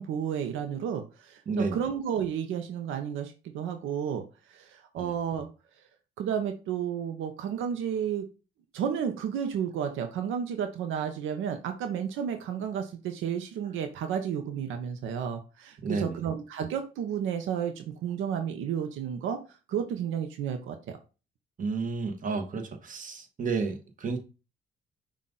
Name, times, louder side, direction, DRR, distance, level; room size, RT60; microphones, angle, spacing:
voice 1, 0.0-5.5 6.2-8.3 8.7-19.4 19.7-21.0, right 8 dB, 80° right, 0.7 m, -32 dB
voice 2, 1.5-1.9 5.0-5.1 15.8-16.2 21.6-24.2, right 4 dB, 40° right, 1.2 m, -31 dB
5.6 x 2.5 x 3.8 m
cardioid pair, 90°, 20 cm